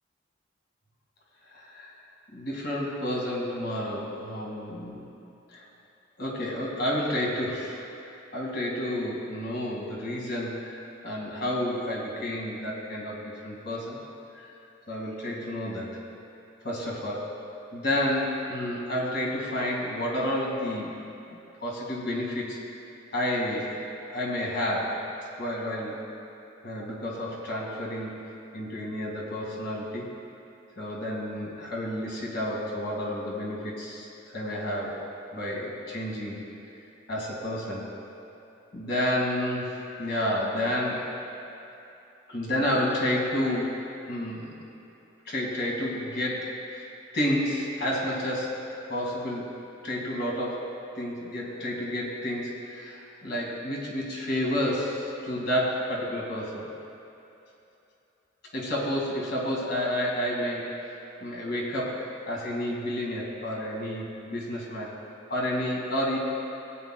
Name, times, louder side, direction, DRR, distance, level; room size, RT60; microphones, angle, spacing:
voice 1, 1.5-1.9 2.3-5.0 6.2-7.8 8.3-14.0 14.3-14.5 14.9-16.0 16.6-17.4 17.7-21.0 21.3-22.6 23.1-23.9 24.1-25.0 25.4-26.0 26.6-28.2 28.5-30.1 30.8-34.1 34.3-35.0 35.3-36.4 37.1-37.9 38.7-41.1 42.3-43.8 44.1-44.5 45.3-46.9 47.1-49.5 49.8-50.7 51.0-56.7 58.5-60.7 61.2-64.9 65.3-66.2, left 1 dB, 60° left, -3 dB, 1.9 m, -30 dB
17.5 x 8.9 x 2.2 m, 2.8 s
head